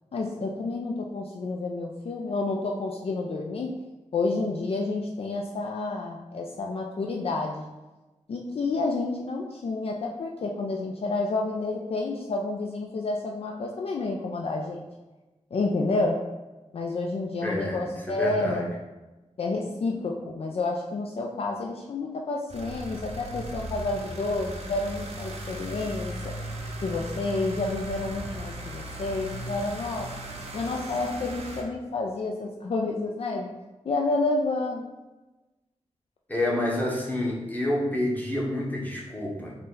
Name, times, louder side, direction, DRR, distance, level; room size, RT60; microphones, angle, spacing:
voice 1, 0.1-3.8 4.1-7.7 8.3-14.9 15.5-16.2 16.7-18.7 19.4-26.4 26.8-30.1 30.5-33.5 33.8-34.9, left 3 dB, 55° left, 0 dB, 0.4 m, -29 dB
voice 2, 17.4-18.7 36.3-39.5, left 1 dB, 15° left, -3 dB, 0.9 m, -28 dB
sound 1, 22.5-31.6, right 1 dB, 60° right, 0.7 m, -37 dB
4.0 x 2.1 x 3.7 m, 1.1 s
cardioid pair, 55°, 12 cm